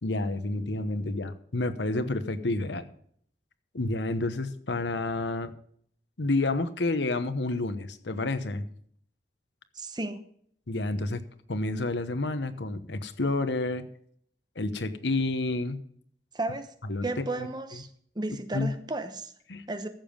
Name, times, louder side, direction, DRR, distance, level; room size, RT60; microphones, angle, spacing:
voice 1, 0.0-2.9 3.7-5.5 6.2-8.6 10.7-11.2 11.5-13.9 14.6-15.8 16.9-17.1 18.5-18.7 19.5-19.6, left 2 dB, 85° left, 1.0 m, -29 dB
voice 2, 9.7-10.2 16.3-16.7 17.0-17.9 18.1-19.3 19.7-19.9, right 2 dB, 25° right, 0.9 m, -33 dB
14.5 x 7.2 x 5.2 m
head